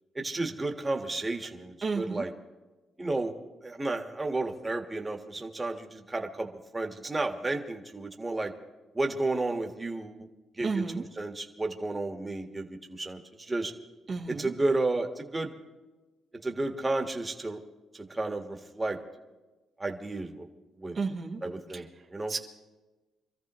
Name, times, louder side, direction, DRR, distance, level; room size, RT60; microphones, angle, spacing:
voice 1, 0.1-2.3 3.0-3.3 3.6-8.5 8.9-10.3 10.6-13.7 14.3-15.5 16.4-17.6 17.9-19.0 19.8-20.5 20.8-21.0 21.4-22.3, right 2 dB, 20° right, 3 dB, 1.6 m, -32 dB
voice 2, 1.8-2.2 10.6-11.0 14.1-14.5 20.9-21.4 22.3-22.4, right 4 dB, 45° right, 1 dB, 1.3 m, -31 dB
26.0 x 14.0 x 3.1 m, 1.2 s
cardioid pair, 90°, 0 cm